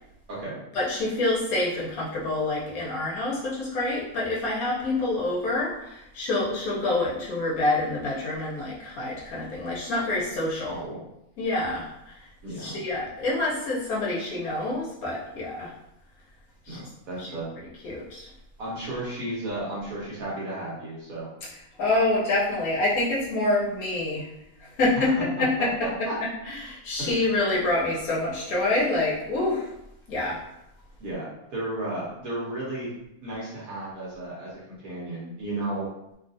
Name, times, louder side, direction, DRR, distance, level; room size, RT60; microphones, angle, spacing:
voice 1, 0.7-10.8 11.4-12.1 12.5-15.7 16.7-16.8 17.2-17.3 17.8-18.3 21.8-24.3 24.8-26.1 26.5-29.7 30.1-30.4, left 2 dB, 80° left, -5 dB, 1.2 m, -27 dB
voice 2, 10.6-11.0 12.4-12.8 16.7-17.5 18.6-21.3 24.9-25.1 25.4-25.5 25.8-26.1 27.0-27.5 31.0-32.9 33.2-35.9, right 1 dB, 70° right, -6 dB, 1.3 m, -34 dB
3.2 x 2.4 x 2.6 m, 0.82 s
omnidirectional pair, 1.6 m